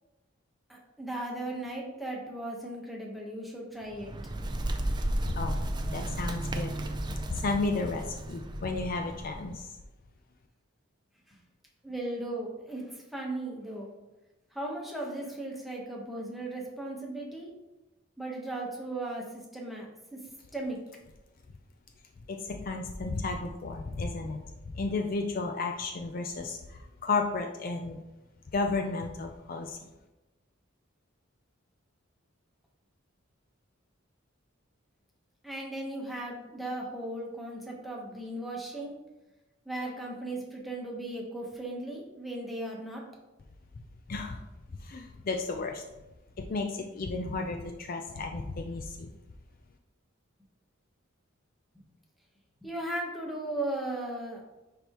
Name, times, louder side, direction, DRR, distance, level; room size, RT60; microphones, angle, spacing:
voice 1, 0.7-4.1 11.3-11.4 11.8-13.9 14.5-17.5 18.2-20.2 20.5-20.8 35.4-38.9 39.6-43.0 52.6-54.4, right 1 dB, ahead, -2 dB, 1.0 m, -37 dB
Bird, 3.8-9.6, right 1 dB, 20° right, 0.4 m, -34 dB
voice 2, 5.3-5.6 5.9-6.7 7.3-9.7 22.3-28.0 28.5-29.8 44.1-44.4 44.8-45.8 46.4-49.1, left 3 dB, 45° left, 4 dB, 0.4 m, -33 dB
10.0 x 3.4 x 2.9 m, 1.1 s
head